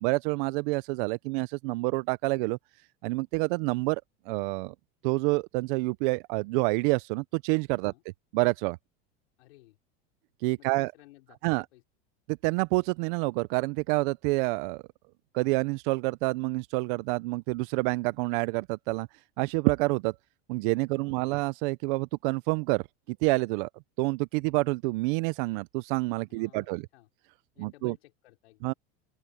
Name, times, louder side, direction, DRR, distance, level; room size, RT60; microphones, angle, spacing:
voice 1, 0.0-2.6 3.0-4.7 5.0-7.9 8.3-8.8 10.4-10.9 11.4-11.6 12.3-14.8 15.3-19.1 19.4-20.1 20.5-23.7 24.0-26.8 27.6-27.9 28.6-28.7, right 25 dB, 55° right, 0.5 m, -28 dB
voice 2, 9.4-9.8 10.6-11.4 11.7-11.8 20.9-21.3 26.3-27.1 27.5-28.8, left 18 dB, 85° left, 5.2 m, -56 dB
open air
supercardioid pair, 155°, 30 cm